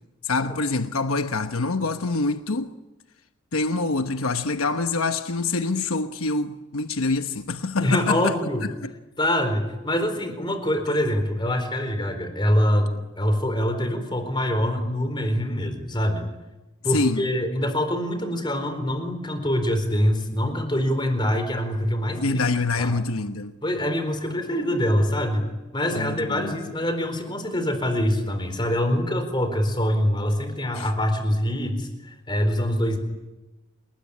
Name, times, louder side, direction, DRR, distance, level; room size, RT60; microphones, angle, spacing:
voice 1, 0.2-2.7 3.5-8.3 8.8-8.9 16.9-17.3 22.2-23.5 25.9-26.5 30.7-30.9, left 3 dB, 80° left, 1.1 m, -25 dB
voice 2, 7.8-8.7 9.2-12.9 13.2-16.2 16.8-22.4 22.8-22.9 23.6-25.4 25.7-33.0, equal, 20° left, 4.3 m, -24 dB
29.5 x 20.5 x 9.9 m
head